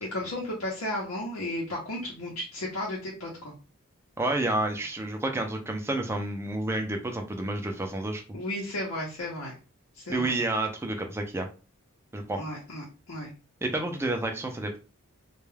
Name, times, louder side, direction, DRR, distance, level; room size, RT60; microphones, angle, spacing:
voice 1, 0.0-3.5 8.3-9.5 9.9-10.4 12.4-13.3, left 1 dB, 85° left, -4 dB, 0.7 m, -34 dB
voice 2, 4.2-8.4 10.1-11.5 12.1-12.4 13.6-14.8, right 2 dB, 10° right, 3 dB, 0.4 m, -30 dB
2.2 x 2.2 x 3.2 m, 0.32 s
head